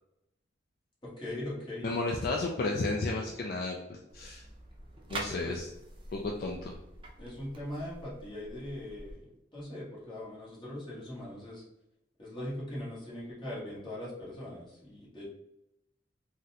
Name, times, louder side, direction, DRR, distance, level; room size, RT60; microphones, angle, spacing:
voice 1, 1.0-1.9 5.2-5.6 7.2-9.2 9.5-11.6 12.2-15.3, left 1 dB, 25° left, -7 dB, 1.3 m, -40 dB
voice 2, 1.8-4.4 5.1-5.7 6.1-6.8, left 3 dB, 55° left, 0 dB, 0.4 m, -33 dB
sound 1, 4.1-9.1, right 2 dB, 30° right, 0.5 m, -45 dB
3.8 x 2.1 x 2.7 m, 0.86 s
head